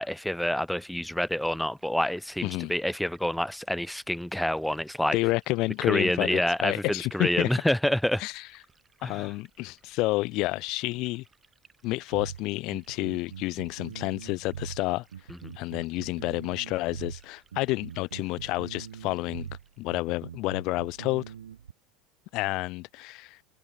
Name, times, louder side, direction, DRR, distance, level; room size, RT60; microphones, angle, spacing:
voice 1, 0.0-5.2 5.8-8.2 9.0-9.3, left 1 dB, 5° left, 0.3 m, -28 dB
Liquid, 0.8-19.9, right 4 dB, 20° right, 3.9 m, -64 dB
voice 2, 2.4-2.7 5.1-7.5 8.2-8.4 9.0-11.2 11.8-15.0 15.6-19.5 19.8-21.2 22.3-23.4, left 21 dB, 60° left, 0.5 m, -29 dB
sound 1, 12.1-21.7, right 9 dB, 90° right, 0.5 m, -42 dB
open air
hypercardioid pair, 80°, 0 cm